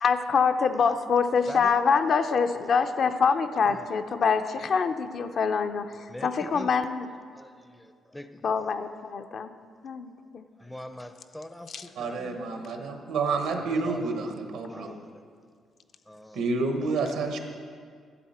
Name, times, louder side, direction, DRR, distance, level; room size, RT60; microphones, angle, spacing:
voice 1, 0.0-7.1 8.4-9.5 9.8-10.4 11.7-11.8, left 5 dB, 55° left, 8 dB, 0.5 m, -25 dB
voice 2, 1.5-1.8 3.6-3.9 6.1-6.7 7.3-8.7 10.6-12.9 13.5-14.4 14.7-15.2 16.1-16.5, left 1 dB, 5° left, 8 dB, 0.5 m, -43 dB
voice 3, 12.0-14.9 16.3-17.4, right 3 dB, 85° right, 4 dB, 1.1 m, -29 dB
11.0 x 7.5 x 4.3 m, 2.1 s
cardioid pair, 90°, 0 cm